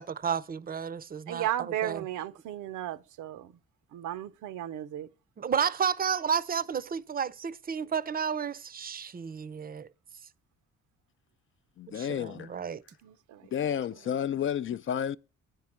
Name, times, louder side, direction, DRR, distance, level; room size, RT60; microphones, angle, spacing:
voice 1, 0.0-2.1 5.4-9.9 11.9-12.8, right 7 dB, 30° right, 0.5 m, -32 dB
voice 2, 1.3-3.5 3.9-5.1 13.0-13.4, right 12 dB, 80° right, 0.7 m, -35 dB
voice 3, 11.8-12.5 13.5-15.2, left 9 dB, 45° left, 0.4 m, -31 dB
9.4 x 4.6 x 7.4 m
cardioid pair, 90°, 30 cm